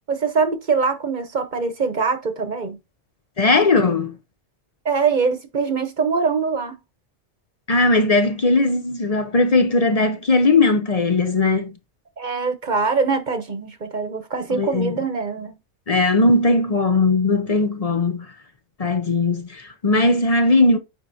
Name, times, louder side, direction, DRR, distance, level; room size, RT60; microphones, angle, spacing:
voice 1, 0.1-2.8 4.8-6.7 12.2-15.6, right 5 dB, 45° right, 1.0 m, -23 dB
voice 2, 3.4-4.1 7.7-11.7 14.5-15.0 15.9-18.3 18.8-20.8, left 3 dB, 40° left, 0.7 m, -18 dB
9.2 x 4.5 x 2.6 m
omnidirectional pair, 1.2 m